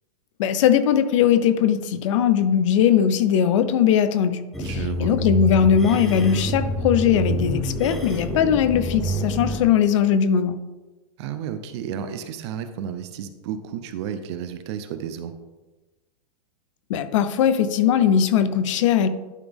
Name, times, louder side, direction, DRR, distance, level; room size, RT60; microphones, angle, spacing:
voice 1, 0.4-4.4 5.0-10.6 16.9-19.1, left 8 dB, 50° left, 12 dB, 0.5 m, -19 dB
sound 1, 4.5-9.6, right 1 dB, ahead, 0.7 m, -27 dB
voice 2, 4.6-5.1 11.2-15.3, right 8 dB, 45° right, 10 dB, 0.6 m, -32 dB
11.0 x 4.1 x 3.5 m, 1.2 s
supercardioid pair, 155°, 21 cm